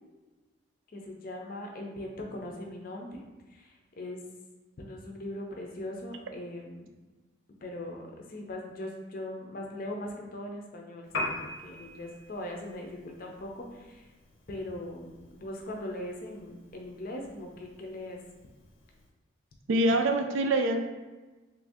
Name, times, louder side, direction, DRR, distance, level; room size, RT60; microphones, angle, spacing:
voice 1, 0.9-3.2 3.5-4.2 4.8-6.9 7.6-11.3 11.6-14.1 14.5-18.2, left 1 dB, 45° left, 1 dB, 0.5 m, -40 dB
Piano, 11.0-19.1, left 2 dB, 90° left, 0.8 m, -43 dB
voice 2, 19.7-20.8, right 1 dB, 75° right, 5 dB, 0.4 m, -25 dB
3.2 x 2.6 x 3.5 m, 1.2 s
head